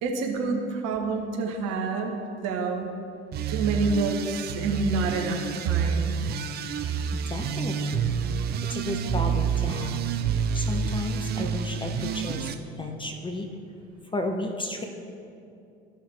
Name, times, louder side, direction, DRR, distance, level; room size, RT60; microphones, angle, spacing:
voice 1, 0.0-2.9 3.5-6.1, right 3 dB, 50° right, 2 dB, 1.3 m, -28 dB
sound 1, 3.3-12.5, right 6 dB, 30° right, 0.5 m, -28 dB
voice 2, 6.8-8.2 8.7-10.1 10.3-13.5 14.1-14.9, left 2 dB, 15° left, 4 dB, 0.7 m, -33 dB
14.5 x 5.4 x 3.4 m, 2.6 s
figure-of-eight pair, 65°, 33 cm